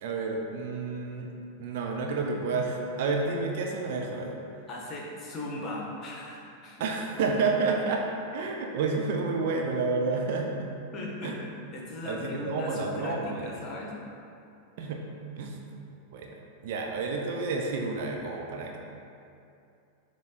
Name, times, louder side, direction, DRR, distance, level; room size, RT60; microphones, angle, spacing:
voice 1, 0.0-1.3 1.6-4.4 6.8-8.0 8.3-10.7 11.2-11.4 12.0-13.5 14.8-15.0 15.4-15.6 16.1-16.3 16.6-18.8, right 4 dB, 60° right, 1 dB, 0.7 m, -30 dB
voice 2, 4.7-6.8 10.9-13.9, left 1 dB, 35° left, -2 dB, 1.3 m, -38 dB
7.0 x 3.3 x 4.3 m, 2.5 s
figure-of-eight pair, 90°, 0 cm